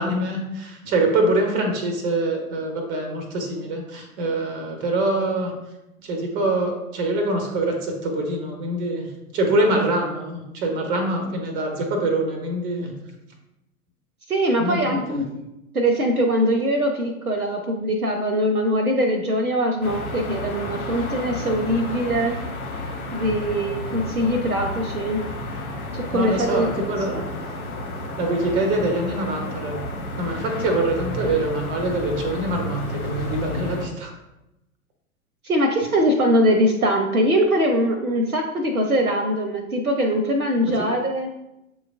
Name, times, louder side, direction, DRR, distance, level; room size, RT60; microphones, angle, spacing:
voice 1, 0.0-5.5 6.0-9.1 9.3-12.9 14.6-15.2 26.1-27.1 28.2-29.8 30.2-34.1, right 2 dB, 10° right, 4 dB, 0.4 m, -24 dB
voice 2, 14.3-15.3 15.7-22.4 23.1-25.2 25.9-26.7 27.1-27.2 35.4-41.3, equal, 90° right, 4 dB, 0.6 m, -22 dB
sound 1, 19.8-33.8, left 1 dB, 80° left, 1.3 m, -31 dB
7.2 x 3.1 x 2.3 m, 0.92 s
figure-of-eight pair, 105°, 42 cm